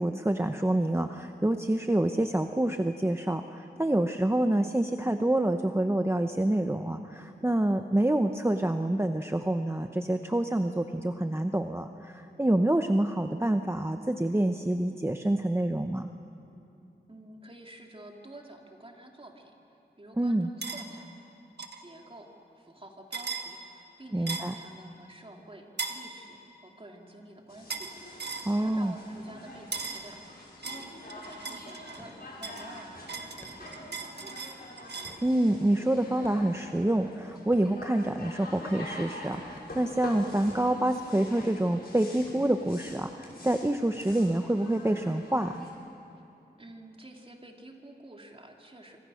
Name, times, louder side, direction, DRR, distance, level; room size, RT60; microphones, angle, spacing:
voice 1, 0.0-16.1 20.2-20.5 24.1-24.5 28.4-28.9 35.2-45.6, right 1 dB, 15° right, 6 dB, 0.8 m, -27 dB
voice 2, 17.1-21.1 21.8-30.2 30.6-34.4 46.6-49.0, right 1 dB, 30° right, 1 dB, 3.0 m, -50 dB
sound 1, 20.6-20.8 21.6-21.8 23.1-23.5 24.3-24.6 25.8-26.0 27.7-27.9 28.2-28.5 29.7-30.1 30.6-32.0 32.4-35.2, right 4 dB, 75° right, 1.7 m, -37 dB
sound 2, 27.5-45.7, left 1 dB, 65° left, 6.0 m, -45 dB
sound 3, 30.0-30.3 30.6-30.7 31.0-31.3 32.0-32.2 32.7-32.8 33.4-33.6 34.1-34.2 34.8-35.3 36.2-36.6 37.5-37.7 38.7-38.8 39.5-39.7 40.5-40.7 41.4-41.6 42.2-42.4 42.9-43.1 43.4-43.7 44.1-44.6, left 1 dB, 15° left, 4.2 m, -53 dB
26.0 x 25.5 x 6.4 m, 2.8 s
wide cardioid pair, 75°, 18 cm